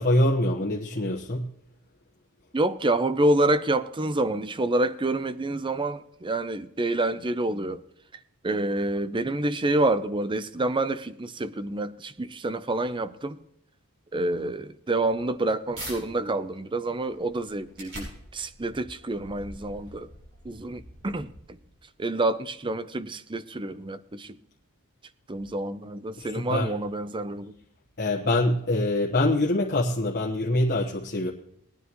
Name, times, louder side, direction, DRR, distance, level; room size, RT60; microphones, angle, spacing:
voice 1, 0.0-1.5 26.2-26.8 28.0-31.3, left 1 dB, 45° left, 1.2 m, -24 dB
voice 2, 2.5-7.8 8.4-13.4 14.1-20.1 20.4-21.6 22.0-24.4 25.3-27.5, right 2 dB, 20° right, 0.6 m, -28 dB
sound 1, 15.7-16.0 16.5-21.8, right 1 dB, 60° right, 6.4 m, -45 dB
20.0 x 9.8 x 3.0 m
head